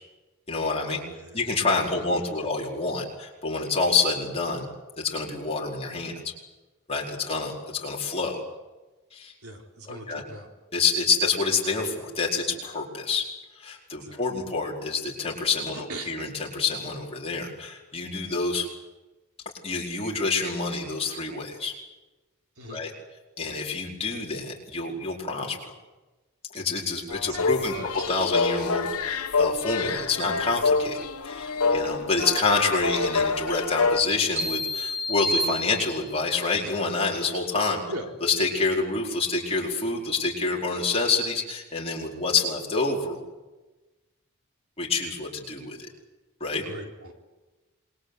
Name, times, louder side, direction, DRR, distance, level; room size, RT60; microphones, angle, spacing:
voice 1, 0.5-1.0 1.3-4.7 5.0-6.3 6.9-8.4 9.1-9.3 9.9-10.2 10.7-13.2 13.6-18.7 19.6-21.7 22.7-22.9 23.4-25.7 26.5-27.7 28.1-31.0 31.2-37.8 38.2-43.2 44.8-45.8 46.4-46.6, left 4 dB, 25° left, -2 dB, 4.7 m, -27 dB
voice 2, 1.1-1.5 1.9-2.5 9.4-10.5 14.0-14.2 15.7-16.1 22.6-22.8 27.3-27.9 37.9-38.0 46.6-47.1, right 1 dB, 75° right, 3 dB, 4.1 m, -40 dB
sound 1, 27.1-34.0, left 4 dB, 80° left, 1.5 m, -27 dB
sound 2, 34.4-36.3, left 1 dB, 30° right, 4.0 m, -29 dB
27.5 x 22.5 x 8.2 m, 1.1 s
head